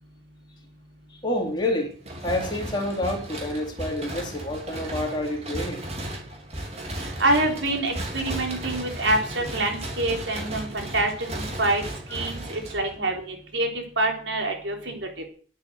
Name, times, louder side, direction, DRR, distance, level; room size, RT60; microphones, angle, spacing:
voice 1, 1.1-1.9 2.2-5.8, left 1 dB, 25° left, 0 dB, 3.5 m, -28 dB
sound 1, 2.0-13.2, right 1 dB, 35° right, 3.4 m, -35 dB
voice 2, 7.2-11.8 12.1-15.0, right 2 dB, 80° right, 3 dB, 4.0 m, -26 dB
11.0 x 8.8 x 7.9 m, 0.43 s
head